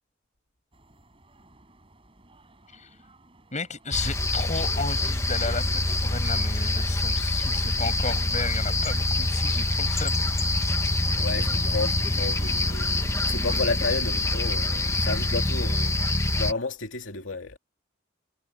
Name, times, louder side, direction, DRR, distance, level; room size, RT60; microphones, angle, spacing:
sound 1, 0.7-13.6, right 1 dB, 30° right, 6.1 m, -49 dB
voice 1, 3.5-10.2, left 3 dB, 40° left, 7.8 m, -33 dB
sound 2, 3.9-16.5, left 2 dB, 15° left, 1.3 m, -25 dB
voice 2, 11.2-13.0 13.3-16.0 16.3-17.6, left 3 dB, 85° left, 2.6 m, -31 dB
head